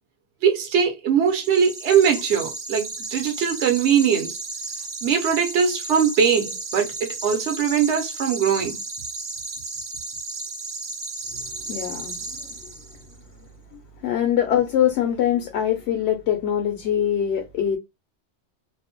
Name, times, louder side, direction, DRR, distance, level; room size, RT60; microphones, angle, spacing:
voice 1, 0.4-4.4 5.0-8.7, right 7 dB, 75° right, 1.0 m, -21 dB
sound 1, 1.3-13.1, right 3 dB, 50° right, 0.4 m, -34 dB
voice 2, 11.7-12.5 13.7-17.8, left 10 dB, 70° left, 0.8 m, -23 dB
2.6 x 2.0 x 2.9 m
omnidirectional pair, 1.2 m